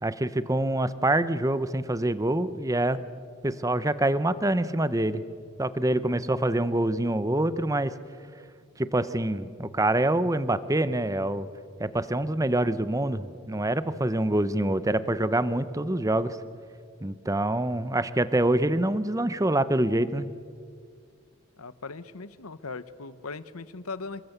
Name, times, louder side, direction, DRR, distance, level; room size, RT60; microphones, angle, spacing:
voice 1, 0.0-3.0 3.4-5.2 5.6-7.9 8.8-11.5 11.8-16.4 17.0-20.3, right 1 dB, 15° right, 14 dB, 0.7 m, -25 dB
voice 2, 21.6-24.2, left 4 dB, 90° left, 15 dB, 1.1 m, -39 dB
27.0 x 21.0 x 8.1 m, 2.1 s
head